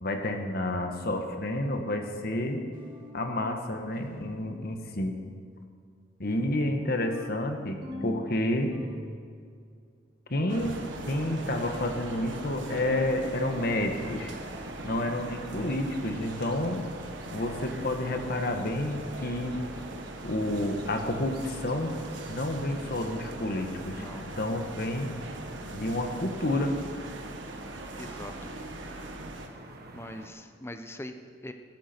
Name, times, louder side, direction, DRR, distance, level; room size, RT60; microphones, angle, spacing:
voice 1, 0.0-2.6 3.1-5.2 6.2-8.7 10.3-14.3 14.8-16.8 17.3-19.6 20.2-21.9 22.3-25.2 25.7-26.7, left 1 dB, 55° left, 4 dB, 1.5 m, -30 dB
sound 1, 2.7-3.3 3.9-4.4 7.1-8.3 8.7-9.4 10.3-10.8 13.1-13.6 14.7-15.2, left 1 dB, 25° right, 2.4 m, -42 dB
voice 2, 4.4-5.0 16.4-16.8 24.0-24.3 27.9-28.3 29.9-31.5, left 1 dB, 15° left, 7 dB, 0.8 m, -43 dB
sound 2, 10.5-29.5, right 2 dB, 80° right, 1.5 m, -41 dB
sound 3, 10.7-30.3, right 1 dB, 55° right, 1.6 m, -46 dB
17.0 x 13.0 x 4.5 m, 2.2 s
head